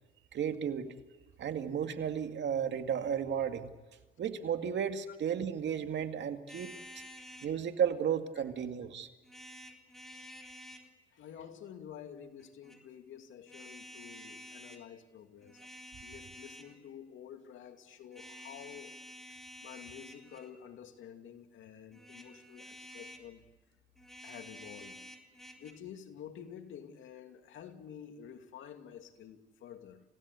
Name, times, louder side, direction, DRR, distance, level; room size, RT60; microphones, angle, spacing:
voice 1, 0.3-0.9 1.4-3.7 4.2-6.7 7.4-9.1, right 8 dB, 65° right, 2.3 m, -33 dB
sound 1, 6.5-7.5 9.2-10.9 12.4-12.8 13.5-14.8 15.4-16.8 18.1-20.6 21.9-23.3 24.0-25.7, equal, ahead, 3.7 m, -50 dB
voice 2, 11.1-15.6 16.0-18.9 19.6-23.4 24.2-25.0 25.6-30.0, left 9 dB, 80° left, 2.6 m, -50 dB
28.5 x 16.5 x 8.3 m
cardioid pair, 90°, 20 cm